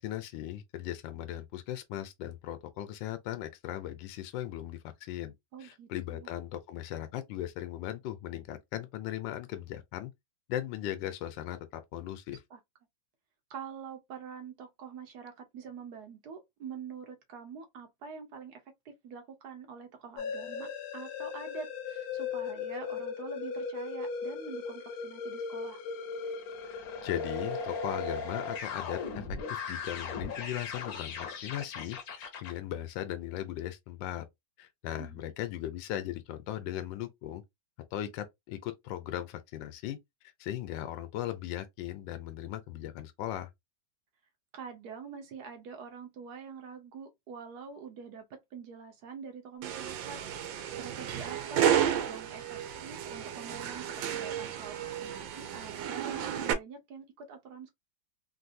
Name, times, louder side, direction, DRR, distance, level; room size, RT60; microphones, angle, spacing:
voice 1, 0.0-5.3 5.6-10.1 10.5-12.4 26.6-34.2 34.6-37.4 37.9-40.0 40.4-43.5, left 12 dB, 80° left, 1.3 m, -38 dB
voice 2, 5.5-6.3 12.5-12.6 13.5-25.8 35.0-35.2 44.5-57.7, right 6 dB, 65° right, 1.1 m, -45 dB
sound 1, 20.2-32.6, left 5 dB, 60° left, 1.1 m, -37 dB
sound 2, 49.6-56.5, right 9 dB, 90° right, 1.4 m, -32 dB
3.3 x 2.6 x 2.5 m
omnidirectional pair, 2.0 m